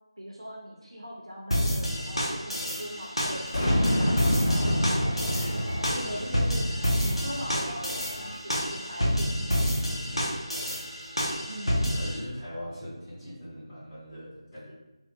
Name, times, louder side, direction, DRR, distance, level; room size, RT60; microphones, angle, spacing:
voice 1, 0.2-3.4 4.0-6.7 7.0-9.7 11.5-11.9, equal, 70° right, -3 dB, 0.5 m, -40 dB
sound 1, 1.5-12.2, equal, 80° left, 0.7 m, -29 dB
sound 2, 3.2-8.4, left 1 dB, 30° left, 0.3 m, -44 dB
Boom, 3.5-6.8, equal, 50° left, 1.3 m, -27 dB
voice 2, 10.0-10.4 11.9-14.7, equal, 5° left, -14 dB, 0.7 m, -41 dB
2.7 x 2.0 x 2.7 m, 1.1 s
figure-of-eight pair, 165°, 3 cm